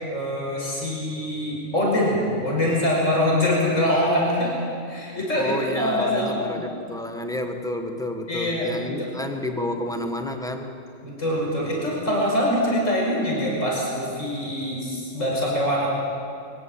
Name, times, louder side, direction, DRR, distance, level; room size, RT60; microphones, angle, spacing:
voice 1, 0.1-4.5 4.9-6.6 8.3-9.1 11.0-15.9, left 1 dB, 70° left, -3 dB, 5.9 m, -24 dB
voice 2, 5.3-10.7, left 1 dB, 5° left, 4 dB, 1.6 m, -30 dB
22.5 x 17.0 x 8.9 m, 2.5 s
omnidirectional pair, 1.4 m